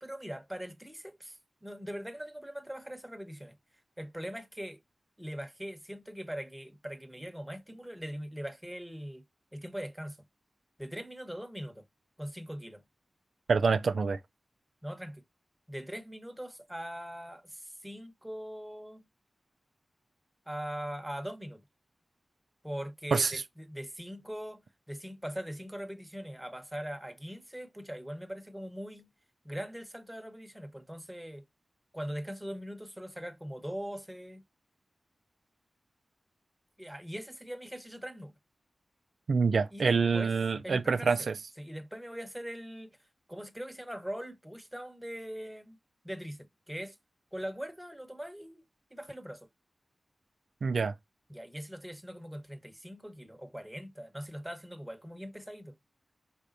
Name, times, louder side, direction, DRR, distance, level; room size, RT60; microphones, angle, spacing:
voice 1, 0.0-3.5 4.0-4.8 5.2-9.2 9.5-10.2 10.8-11.8 12.2-12.8 14.8-15.2 15.7-19.1 20.5-21.6 22.6-29.1 29.4-31.4 31.9-34.4 36.8-38.3 39.7-40.3 40.6-41.1 41.6-43.0 43.3-45.8 46.0-47.0 47.3-48.6 48.9-49.5 51.3-55.8, equal, 5° right, 1.0 m, -41 dB
voice 2, 13.5-14.2 23.1-23.4 39.3-41.3 50.6-50.9, right 5 dB, 85° right, 0.4 m, -26 dB
5.1 x 3.4 x 2.5 m
cardioid pair, 45°, 0 cm